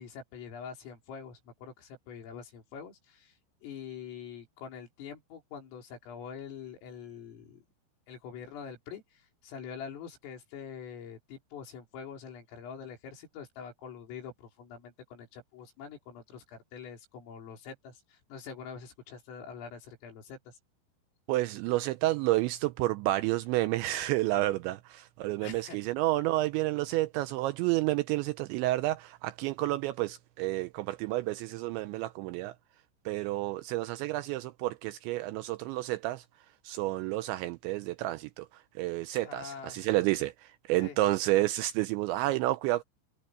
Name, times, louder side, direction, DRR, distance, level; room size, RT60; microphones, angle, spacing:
voice 1, 0.0-3.3 3.6-7.6 8.1-9.0 9.4-20.5 25.4-25.8 39.2-39.8 40.8-41.0, left 7 dB, 85° left, 7.2 m, -45 dB
voice 2, 21.3-32.5 33.1-36.2 36.6-38.5 38.8-42.8, right 17 dB, 90° right, 2.6 m, -30 dB
omnidirectional pair, 5.8 m